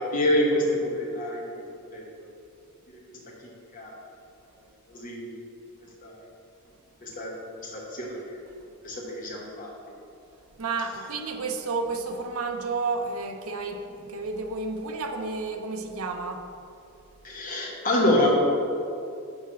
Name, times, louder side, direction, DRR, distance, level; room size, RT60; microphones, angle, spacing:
voice 1, 0.0-2.0 3.7-3.9 4.9-5.4 6.0-6.2 7.0-7.3 7.6-8.4 8.8-9.7 11.0-11.1 17.2-18.3, left 1 dB, 40° left, -2 dB, 1.2 m, -27 dB
voice 2, 10.6-16.5, right 4 dB, 75° right, 5 dB, 0.6 m, -31 dB
6.3 x 4.1 x 6.2 m, 2.6 s
head